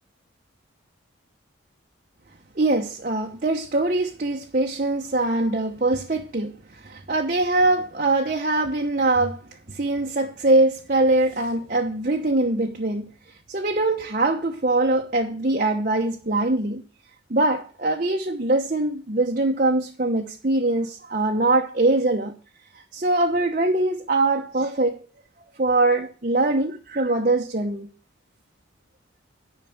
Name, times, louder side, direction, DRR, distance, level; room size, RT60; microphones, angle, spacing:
voice 1, 2.6-9.4 9.7-13.1 13.5-16.8 17.3-22.3 22.7-25.0 25.6-27.9, right 2 dB, 40° right, 1.0 m, -22 dB
10.5 x 5.7 x 8.7 m
head